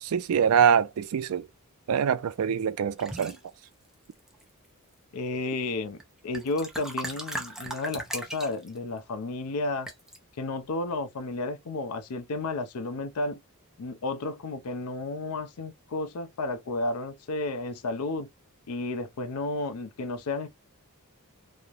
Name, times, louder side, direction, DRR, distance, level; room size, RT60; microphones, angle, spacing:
voice 1, 0.0-1.5 1.9-3.4, right 7 dB, 75° right, 0.4 m, -24 dB
sound 1, 3.0-3.4 4.1-4.7 6.0-6.1 6.3-8.8 9.9-10.2, right 1 dB, ahead, 0.4 m, -37 dB
voice 2, 5.1-6.0 6.2-9.9 10.4-13.4 13.8-18.3 18.7-20.5, left 2 dB, 80° left, 0.5 m, -32 dB
3.0 x 2.0 x 2.3 m
head